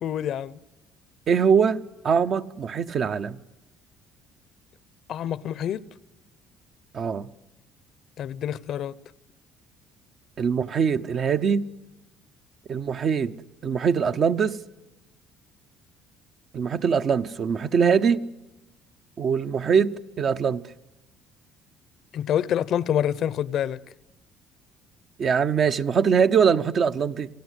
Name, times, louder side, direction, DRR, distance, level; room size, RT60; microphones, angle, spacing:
voice 1, 0.0-0.6 5.1-5.9 8.2-8.9 22.1-23.8, left 10 dB, 60° left, 0.7 m, -27 dB
voice 2, 1.3-3.4 6.9-7.3 10.4-11.7 12.7-13.3 13.6-14.6 16.5-18.2 19.2-20.6 25.2-27.3, right 6 dB, 45° right, 0.8 m, -22 dB
27.5 x 17.0 x 8.2 m
cardioid pair, 110°, 0 cm